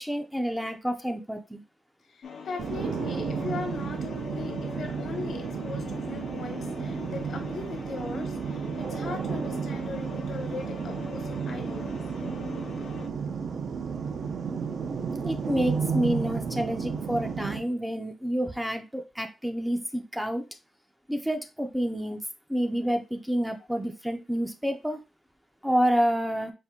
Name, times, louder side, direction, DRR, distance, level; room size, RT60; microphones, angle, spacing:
voice 1, 0.0-1.6 15.2-20.4 21.1-22.2 22.5-25.0 25.6-26.5, equal, 5° right, 5 dB, 0.4 m, -28 dB
voice 2, 2.1-12.0, left 4 dB, 75° left, 4 dB, 1.2 m, -39 dB
sound 1, 2.2-13.1, left 6 dB, 60° left, 0.5 m, -42 dB
sound 2, 2.6-17.6, right 6 dB, 70° right, 0.6 m, -32 dB
4.3 x 2.6 x 3.6 m, 0.28 s
wide cardioid pair, 180°, 0 cm